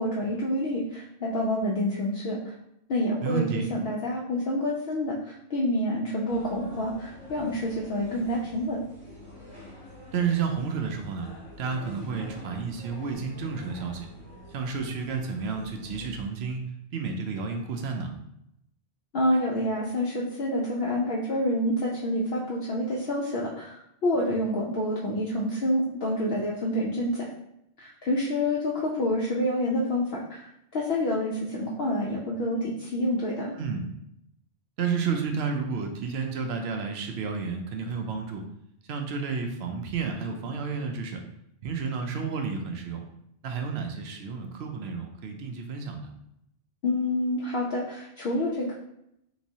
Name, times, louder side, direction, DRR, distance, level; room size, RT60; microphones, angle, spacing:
voice 1, 0.0-2.5 2.9-8.8 19.1-27.3 27.8-33.5 46.8-48.8, left 1 dB, 60° left, -4 dB, 0.7 m, -28 dB
voice 2, 3.2-3.6 10.1-11.3 11.6-14.1 14.5-18.1 33.5-33.8 34.8-38.4 38.8-41.2 41.6-43.0 43.4-46.1, right 5 dB, 65° right, 4 dB, 0.8 m, -31 dB
sound 1, 6.3-16.3, left 1 dB, 25° left, 1.2 m, -46 dB
3.5 x 3.0 x 2.7 m, 0.78 s
omnidirectional pair, 1.3 m